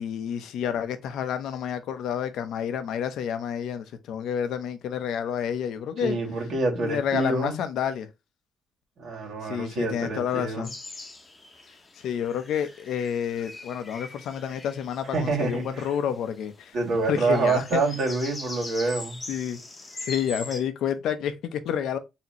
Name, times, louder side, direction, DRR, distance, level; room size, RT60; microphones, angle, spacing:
voice 1, 0.0-6.2 6.7-8.1 9.4-10.7 12.0-16.7 17.0-17.8 19.3-19.6 20.0-22.0, left 8 dB, 80° left, 0.6 m, -29 dB
voice 2, 6.0-7.6 9.0-10.7 15.1-15.9 16.7-19.2, right 3 dB, 65° right, 2.0 m, -27 dB
sound 1, 10.6-20.6, left 2 dB, 25° left, 0.9 m, -42 dB
4.3 x 2.9 x 2.9 m
cardioid pair, 90°, 0 cm